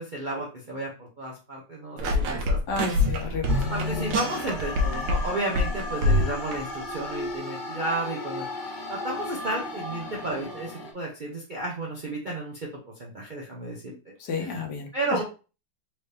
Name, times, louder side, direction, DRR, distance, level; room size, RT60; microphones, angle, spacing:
voice 1, 0.0-2.6 3.5-12.6 13.0-13.9 14.4-14.5 14.9-15.2, right 2 dB, 50° right, -3 dB, 0.5 m, -32 dB
sound 1, 2.0-5.3 5.5-6.6, left 1 dB, 85° right, 1.5 m, -25 dB
voice 2, 2.7-3.6 13.9-15.2, left 4 dB, 70° left, 3 dB, 1.4 m, -32 dB
sound 2, 3.5-10.9, left 2 dB, 90° left, 1.9 m, -35 dB
4.5 x 2.7 x 3.2 m, 0.33 s
omnidirectional pair, 1.9 m